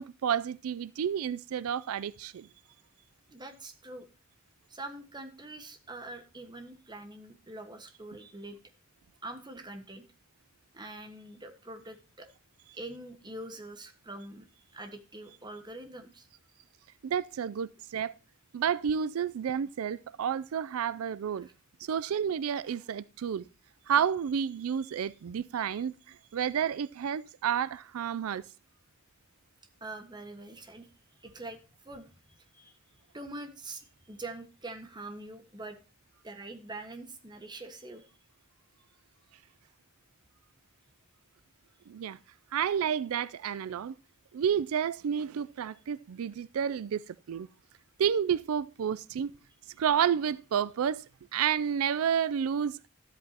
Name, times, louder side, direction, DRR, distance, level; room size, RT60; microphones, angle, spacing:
voice 1, 0.0-2.5 17.0-18.1 18.5-21.5 21.8-23.4 23.9-28.4 41.9-42.2 42.5-44.0 44.3-47.5 48.0-49.3 49.8-51.0 51.3-52.8, right 8 dB, 90° right, 0.4 m, -30 dB
voice 2, 3.3-4.1 4.7-8.6 9.2-10.0 10.7-12.3 12.7-14.5 14.7-16.3 21.4-21.5 25.6-25.8 29.8-30.9 31.2-32.1 32.5-32.8 33.1-35.8 36.2-38.1, right 2 dB, 20° right, 1.4 m, -44 dB
13.0 x 8.2 x 2.8 m
head